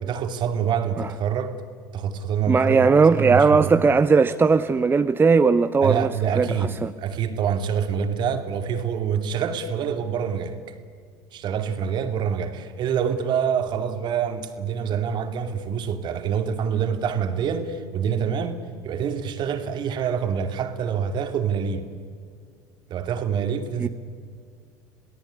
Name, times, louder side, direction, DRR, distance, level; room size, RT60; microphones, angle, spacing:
voice 1, 0.0-1.5 1.9-3.7 5.8-10.7 11.3-21.9 22.9-23.9, right 7 dB, 50° right, 2.7 m, -26 dB
voice 2, 2.5-6.1 6.3-6.9 23.8-23.9, right 4 dB, 20° right, 0.8 m, -18 dB
28.0 x 18.0 x 9.9 m
hypercardioid pair, 75°, 10 cm